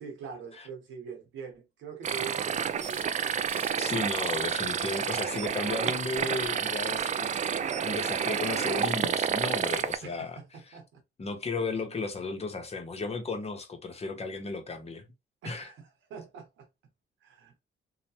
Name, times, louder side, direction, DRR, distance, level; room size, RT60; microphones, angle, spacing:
voice 1, 0.0-3.2 8.4-8.6 10.0-11.0 15.4-16.7 17.2-17.6, right 6 dB, 85° right, 1.1 m, -44 dB
sound 1, 2.0-10.0, right 7 dB, 35° right, 0.4 m, -29 dB
sound 2, 2.8-3.0 3.5-3.7 4.1-4.4 4.8-5.0 5.5-5.7 6.2-6.5 7.0-7.3, left 1 dB, 10° left, 1.2 m, -48 dB
voice 2, 3.8-7.4 7.8-10.4 10.7-10.8 11.2-15.1 15.4-15.7, left 3 dB, 30° left, 0.8 m, -34 dB
2.9 x 2.1 x 2.8 m
cardioid pair, 90°, 20 cm